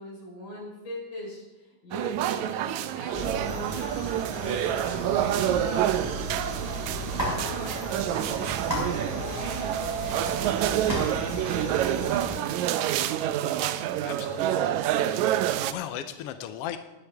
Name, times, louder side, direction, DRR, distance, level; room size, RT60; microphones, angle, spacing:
voice 1, 0.0-8.5 9.1-14.0, equal, 55° left, -3 dB, 5.5 m, -43 dB
sound 1, 1.9-15.7, right 12 dB, 85° right, 2.0 m, -28 dB
sound 2, 3.1-12.4, equal, 5° left, 4.6 m, -34 dB
voice 2, 14.0-14.6 14.9-16.8, left 11 dB, 75° left, 9 dB, 1.4 m, -38 dB
19.0 x 10.5 x 3.5 m, 1.1 s
omnidirectional pair, 3.3 m